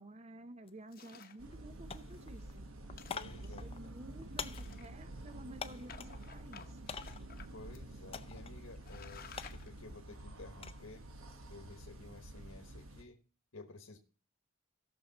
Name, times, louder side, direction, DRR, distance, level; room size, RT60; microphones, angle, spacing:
voice 1, 0.0-2.7 3.4-6.8, right 1 dB, 30° right, 0.6 m, -52 dB
sound 1, 0.6-0.8 1.1-1.6 1.9-6.2 6.9-7.4 8.1-8.6 8.9-10.9 11.2-11.6, left 6 dB, 25° left, 0.5 m, -46 dB
sound 2, 0.9-1.4 2.0-2.1 2.4-2.5 2.9-3.7 4.4-5.2 5.9-7.5 7.7-7.8 8.4-8.5 8.7-9.7, left 6 dB, 45° left, 0.9 m, -54 dB
sound 3, 1.4-13.0, right 1 dB, 80° right, 1.1 m, -49 dB
voice 2, 3.1-3.7 7.5-11.1 11.5-13.2 13.5-14.0, left 3 dB, 80° left, 1.3 m, -53 dB
17.0 x 6.6 x 4.1 m
head